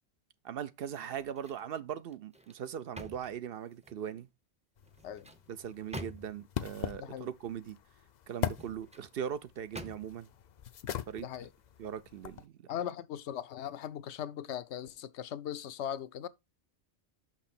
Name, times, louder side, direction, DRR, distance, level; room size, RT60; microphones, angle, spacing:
voice 1, 0.4-4.3 5.5-7.8 8.3-10.3 11.1-11.3 11.8-12.6, right 9 dB, 65° right, 0.7 m, -40 dB
sound 1, 1.0-1.7 2.1-4.1 4.8-6.6 8.3-9.1 9.7-10.3 10.8-11.0, equal, 10° right, 0.6 m, -48 dB
sound 2, 4.8-12.5, left 9 dB, 55° left, 0.5 m, -42 dB
voice 2, 7.0-7.3 11.2-11.5 12.7-16.3, left 10 dB, 85° left, 0.9 m, -39 dB
6.0 x 5.9 x 4.2 m
omnidirectional pair, 1.1 m